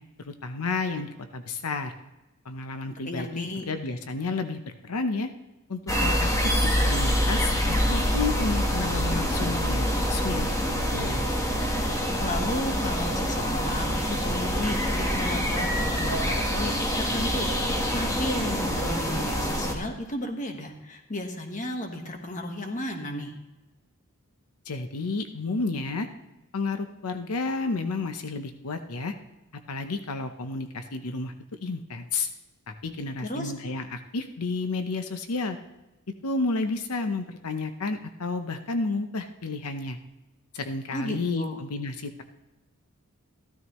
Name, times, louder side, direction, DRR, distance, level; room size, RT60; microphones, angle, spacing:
voice 1, 0.2-1.9 2.4-5.3 5.7-11.2 24.7-26.1 26.5-29.1 29.7-32.3 32.7-35.6 36.2-40.0 40.5-42.2, left 3 dB, 85° left, 8 dB, 0.8 m, -31 dB
voice 2, 2.9-3.7 12.2-23.3 33.2-33.5 40.9-41.6, left 1 dB, 35° left, 4 dB, 1.4 m, -34 dB
sound 1, 5.9-19.7, equal, 15° left, 1.3 m, -26 dB
14.5 x 12.5 x 3.1 m, 1.0 s
head